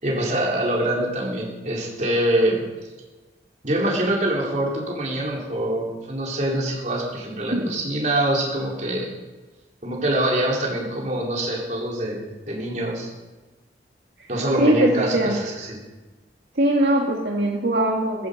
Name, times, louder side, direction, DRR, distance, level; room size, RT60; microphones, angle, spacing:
voice 1, 0.0-2.6 3.6-9.1 9.8-13.1 14.3-15.8, right 1 dB, 40° right, -3 dB, 4.3 m, -24 dB
voice 2, 14.6-15.4 16.6-18.3, right 1 dB, 75° right, -1 dB, 1.9 m, -21 dB
15.0 x 14.0 x 5.3 m, 1.2 s
head